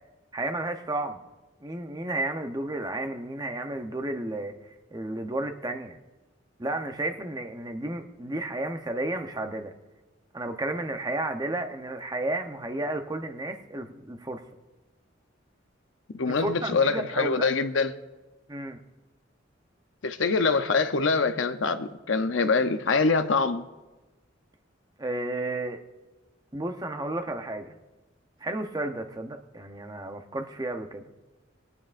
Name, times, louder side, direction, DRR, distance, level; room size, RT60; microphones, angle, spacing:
voice 1, 0.3-1.2 1.6-4.5 4.9-6.0 6.6-9.7 10.3-14.4 16.2-17.5 18.5-18.8 25.0-25.8 26.5-27.8 28.4-31.0, right 2 dB, 20° right, 0.8 m, -32 dB
voice 2, 16.1-17.9 20.0-23.6, left 4 dB, 85° left, 0.7 m, -24 dB
21.0 x 9.6 x 2.5 m
head